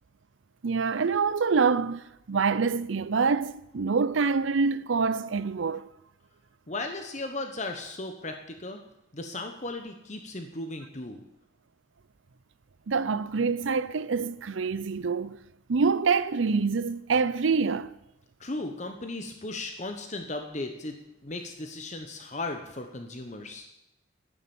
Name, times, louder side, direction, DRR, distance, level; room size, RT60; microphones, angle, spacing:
voice 1, 0.6-5.9 12.9-15.4 15.7-17.9, right 5 dB, 80° right, 0.6 m, -26 dB
voice 2, 6.7-8.8 9.1-11.2 18.4-20.9 21.2-23.7, left 2 dB, 35° left, 1.0 m, -36 dB
11.0 x 10.5 x 7.1 m
head